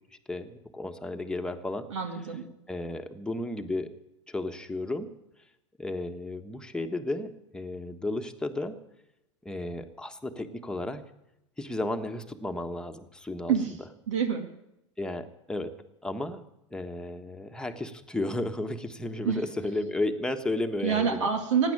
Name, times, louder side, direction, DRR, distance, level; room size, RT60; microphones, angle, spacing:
voice 1, 0.3-1.9 2.7-3.9 4.3-5.1 5.8-8.8 9.4-11.0 11.6-13.5 15.0-15.7 16.0-16.4 16.7-21.3, left 2 dB, 5° left, 5 dB, 1.4 m, -33 dB
voice 2, 1.9-2.4 13.5-13.7 14.1-14.5 19.2-19.4 20.8-21.7, right 7 dB, 80° right, 5 dB, 2.3 m, -26 dB
16.5 x 9.8 x 8.7 m, 0.88 s
hypercardioid pair, 105°, 16 cm